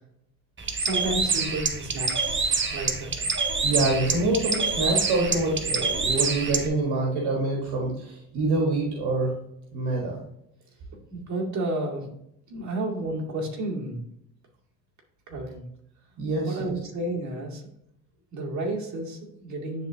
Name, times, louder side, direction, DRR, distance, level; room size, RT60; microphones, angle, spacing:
Bird, 0.6-6.7, right 4 dB, 30° right, 1.0 m, -26 dB
voice 1, 0.8-3.4 11.1-12.1 12.5-14.0 15.3-15.7 16.3-17.6 18.3-19.9, right 2 dB, 45° right, -2 dB, 2.4 m, -32 dB
voice 2, 3.6-9.3 9.7-10.2 16.2-16.7, right 2 dB, 75° right, -1 dB, 1.7 m, -26 dB
10.5 x 3.8 x 2.9 m, 0.76 s
supercardioid pair, 85°, 40 cm